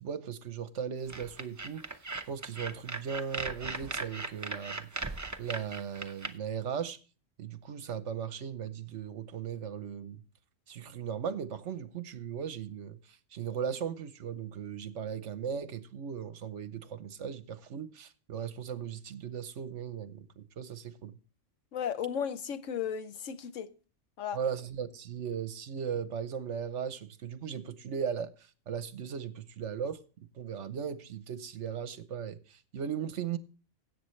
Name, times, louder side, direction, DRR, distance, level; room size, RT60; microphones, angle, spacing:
voice 1, 0.0-2.0 2.3-4.9 5.4-7.0 7.4-10.2 10.7-21.1 24.3-33.4, right 7 dB, 70° right, 1.2 m, -37 dB
sound 1, 1.1-6.3, right 3 dB, 20° right, 0.6 m, -38 dB
voice 2, 21.7-23.7 24.2-24.4, left 8 dB, 85° left, 1.2 m, -35 dB
17.0 x 8.0 x 3.2 m
omnidirectional pair, 1.3 m